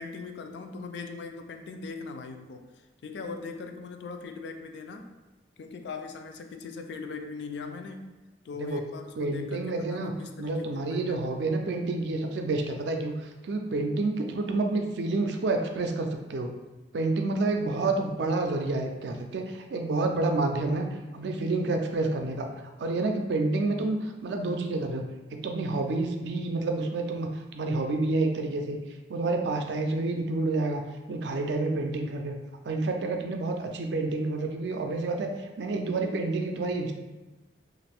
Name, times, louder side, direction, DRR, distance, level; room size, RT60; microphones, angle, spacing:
voice 1, 0.0-5.1 5.6-8.0 8.4-11.3, left 4 dB, 70° left, 6 dB, 0.3 m, -40 dB
voice 2, 9.2-10.1 10.4-16.5 16.9-20.9 21.1-22.5 22.8-25.0 25.3-28.8 29.1-30.8 31.1-32.3 32.7-36.9, right 2 dB, 70° right, 4 dB, 0.4 m, -29 dB
2.5 x 2.4 x 3.3 m, 1.1 s
head